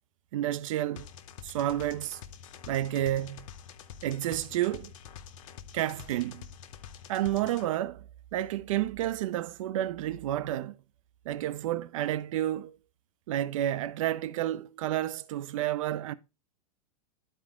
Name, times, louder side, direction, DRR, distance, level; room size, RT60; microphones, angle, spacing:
voice 1, 0.3-1.1 1.4-2.2 2.7-3.5 4.0-4.9 5.7-6.4 7.1-10.7 11.2-12.7 13.3-16.1, right 13 dB, 55° right, 0.6 m, -30 dB
sound 1, 1.0-7.7, left 8 dB, 55° left, 0.7 m, -47 dB
11.5 x 4.1 x 3.6 m
figure-of-eight pair, 95°, 20 cm